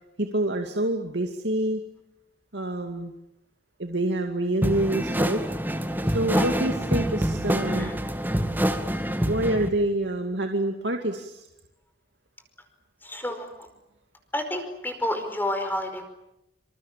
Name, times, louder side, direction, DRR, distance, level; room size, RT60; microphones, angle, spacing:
voice 1, 0.2-1.8 2.5-3.1 3.8-5.4 6.0-7.9 9.3-11.4, right 1 dB, 80° right, 4 dB, 2.5 m, -27 dB
sound 1, 4.6-9.7, equal, 10° right, 2.2 m, -26 dB
voice 2, 13.0-13.7 14.3-16.1, left 1 dB, 10° left, 6 dB, 5.1 m, -30 dB
27.0 x 27.0 x 7.5 m, 0.88 s
head